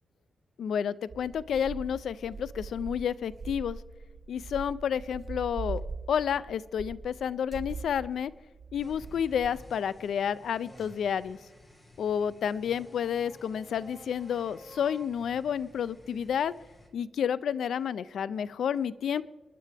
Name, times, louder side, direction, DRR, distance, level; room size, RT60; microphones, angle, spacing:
voice 1, 0.6-3.8 4.3-5.8 6.1-8.3 8.7-11.4 12.0-16.5 16.9-19.2, left 8 dB, 80° left, 19 dB, 0.4 m, -30 dB
sound 1, 1.1-9.5, right 4 dB, 45° right, 1.4 m, -41 dB
sound 2, 8.8-16.9, equal, 25° left, 2.0 m, -53 dB
26.5 x 10.0 x 3.4 m, 1.3 s
cardioid pair, 85°, 0 cm